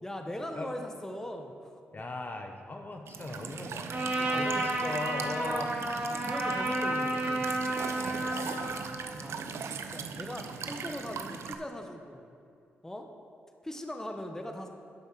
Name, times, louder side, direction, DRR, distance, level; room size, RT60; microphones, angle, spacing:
voice 1, 0.0-1.8 4.2-4.7 6.2-7.5 9.2-12.3 12.8-13.1 13.6-14.7, left 1 dB, 10° left, 4 dB, 1.1 m, -40 dB
voice 2, 1.9-3.9 4.3-5.7 8.0-8.7, left 2 dB, 40° left, 4 dB, 1.0 m, -38 dB
Walk footsteps / Chirp tweet / Stream, 3.1-11.6, right 6 dB, 70° right, 0.6 m, -39 dB
Trumpet, 3.9-8.8, right 1 dB, 35° right, 2.6 m, -31 dB
11.5 x 5.3 x 6.2 m, 2.5 s
supercardioid pair, 55°, 5 cm